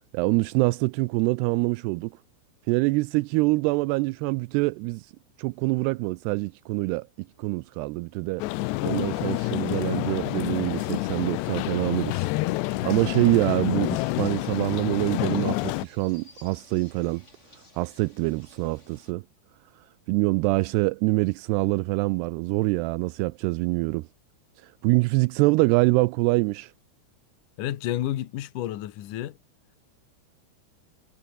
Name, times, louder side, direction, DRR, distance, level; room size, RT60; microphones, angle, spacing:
voice 1, 0.1-2.2 2.7-5.1 5.4-7.1 7.4-8.4 8.8-17.3 17.7-19.2 20.1-24.1 24.6-26.7, right 23 dB, 85° right, 2.5 m, -25 dB
sound 1, 8.4-15.9, left 19 dB, 85° left, 3.0 m, -28 dB
sound 2, 13.8-19.1, left 2 dB, 15° left, 5.1 m, -56 dB
voice 2, 27.6-29.4, left 13 dB, 60° left, 2.5 m, -30 dB
omnidirectional pair, 4.8 m